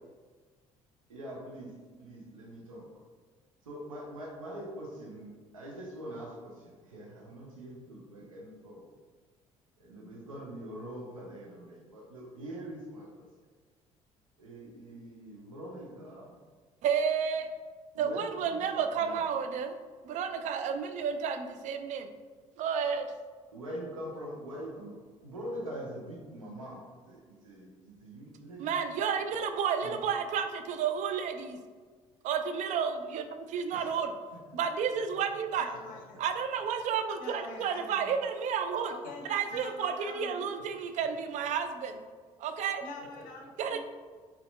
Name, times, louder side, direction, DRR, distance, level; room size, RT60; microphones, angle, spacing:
voice 1, 1.1-1.7 2.0-2.9 3.7-8.9 9.8-13.3 14.4-16.3 17.9-19.2 23.5-28.8 29.8-30.0 33.7-34.0 34.9-35.0 43.1-43.2, equal, 85° right, -3 dB, 0.7 m, -44 dB
voice 2, 16.8-17.5 18.0-19.7 20.1-22.1 22.6-23.1 28.6-31.6 32.2-34.1 34.5-35.7 36.2-38.9 39.3-42.0 42.4-42.8 43.6-43.8, right 7 dB, 45° right, 8 dB, 0.4 m, -31 dB
voice 3, 35.6-36.2 36.9-38.2 38.9-40.5 42.8-43.8, left 3 dB, 55° left, 0 dB, 0.6 m, -46 dB
4.1 x 2.8 x 2.4 m, 1.5 s
figure-of-eight pair, 50°, 17 cm